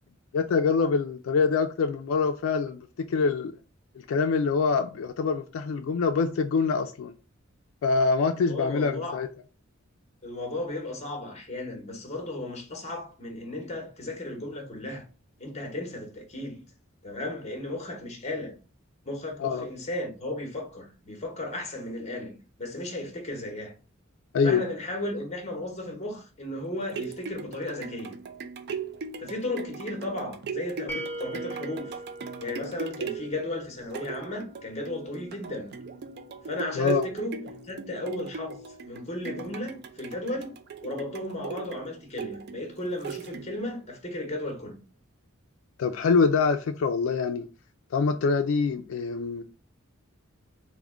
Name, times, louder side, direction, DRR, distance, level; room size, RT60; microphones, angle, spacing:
voice 1, 0.3-3.5 4.0-7.1 7.8-9.3 19.4-19.7 24.3-24.6 36.8-37.0 45.8-47.5 47.9-49.4, left 5 dB, 75° left, 0.3 m, -25 dB
voice 2, 8.5-9.2 10.2-15.1 15.4-16.6 17.0-18.6 19.0-23.7 24.4-28.2 29.2-31.9 32.4-35.7 36.4-38.6 38.8-44.8, left 1 dB, 35° left, 1.0 m, -35 dB
sound 1, 26.6-43.8 44.3-44.4, right 5 dB, 50° right, 0.4 m, -39 dB
sound 2, 30.9-33.7, right 1 dB, 10° left, 0.6 m, -39 dB
3.5 x 2.1 x 3.6 m
head